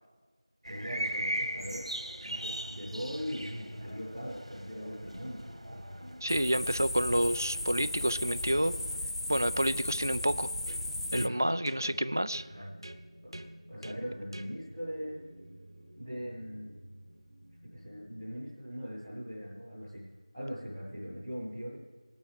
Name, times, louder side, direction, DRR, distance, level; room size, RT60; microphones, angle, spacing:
sound 1, 0.6-9.0, right 1 dB, 80° right, 1.8 m, -40 dB
voice 1, 0.7-1.8 2.2-5.4 5.7-6.1 11.1-11.4 12.5-12.8 13.7-15.1 16.0-16.8 17.7-20.0 20.3-21.7, equal, 5° left, -14 dB, 1.0 m, -40 dB
voice 2, 6.2-8.7 9.3-10.5 11.1-12.4, right 1 dB, 35° right, 15 dB, 0.3 m, -29 dB
sound 2, 6.3-11.3, left 1 dB, 65° left, 0.3 m, -36 dB
sound 3, 10.7-18.4, right 1 dB, 50° right, 1.0 m, -49 dB
20.0 x 8.9 x 5.1 m, 1.5 s
figure-of-eight pair, 175°, 3 cm